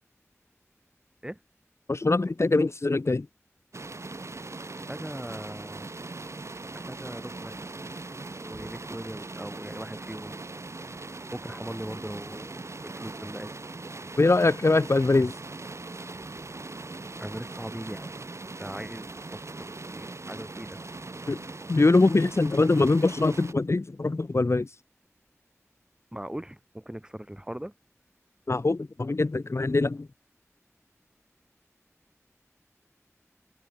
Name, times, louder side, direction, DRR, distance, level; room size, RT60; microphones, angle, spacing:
voice 1, 1.9-3.3 14.2-15.3 21.3-21.4 21.7-24.7 28.5-30.1, left 3 dB, 60° left, 0.8 m, -23 dB
sound 1, 3.7-23.5, right 3 dB, 65° right, 1.3 m, -40 dB
voice 2, 4.9-6.0 6.7-7.7 8.4-10.4 10.7-12.5 12.8-13.5 17.2-18.1 18.6-19.4 19.8-20.8 26.1-27.7, right 1 dB, 15° right, 3.4 m, -40 dB
wide cardioid pair, 40°, 5 cm